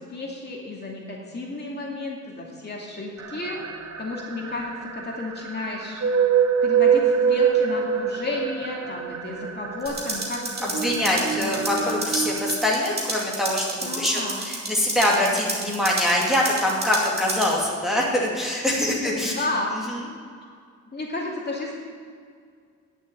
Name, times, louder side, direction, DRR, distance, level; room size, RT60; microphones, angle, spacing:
voice 1, 0.0-3.6 4.0-6.0 6.6-12.0 13.8-14.4 18.9-19.7 20.9-21.8, left 2 dB, 35° left, -3 dB, 2.5 m, -32 dB
sound 1, 3.2-12.6, right 7 dB, 60° right, 1.0 m, -25 dB
sound 2, 9.9-17.5, right 2 dB, 30° right, 2.6 m, -32 dB
voice 2, 10.6-19.3, left 1 dB, ahead, -4 dB, 2.5 m, -24 dB
10.5 x 6.8 x 8.7 m, 2.1 s
cardioid pair, 95°, 30 cm